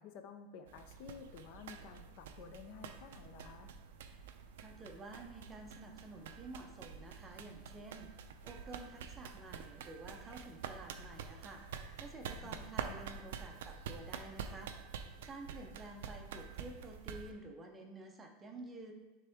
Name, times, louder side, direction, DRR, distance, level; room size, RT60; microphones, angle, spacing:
voice 1, 0.0-3.7 12.4-13.0, left 6 dB, 40° left, 7 dB, 0.5 m, -53 dB
sound 1, 0.7-17.3, right 7 dB, 85° right, 0.5 m, -47 dB
voice 2, 4.6-11.6 12.0-14.7 15.2-18.9, right 2 dB, 10° right, 3 dB, 0.5 m, -51 dB
9.5 x 3.5 x 3.5 m, 1.2 s
supercardioid pair, 180°, 0 cm